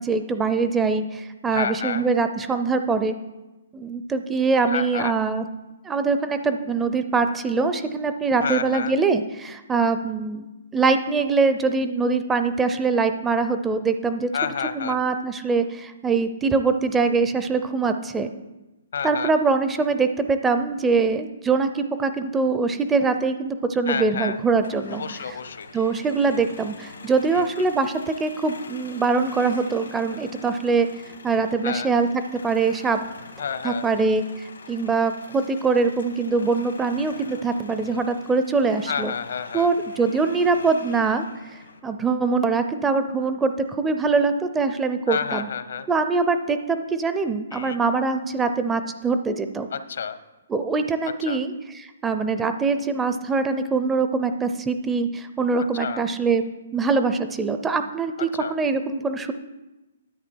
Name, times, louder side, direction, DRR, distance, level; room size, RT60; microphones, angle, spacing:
voice 1, 0.0-3.2 3.7-5.4 5.8-10.5 10.7-14.3 14.7-18.3 19.0-25.0 25.7-30.9 31.2-33.0 33.6-39.1 39.5-41.3 41.5-45.5 45.9-49.7 50.5-56.4 56.7-59.3, right 4 dB, 10° right, 9 dB, 0.5 m, -23 dB
voice 2, 1.5-2.1 4.7-5.1 8.4-8.9 14.3-15.0 18.9-19.3 23.9-24.4 24.9-25.7 27.3-27.4 31.6-31.9 33.4-33.8 38.9-39.7 45.1-45.9 47.5-47.8 49.7-50.2 51.3-51.4 55.6-56.0 58.4-58.5, left 7 dB, 75° left, 11 dB, 0.8 m, -29 dB
sound 1, 24.2-41.8, left 4 dB, 90° left, 1.3 m, -44 dB
9.9 x 8.3 x 4.5 m, 1.1 s
hypercardioid pair, 150°, 0 cm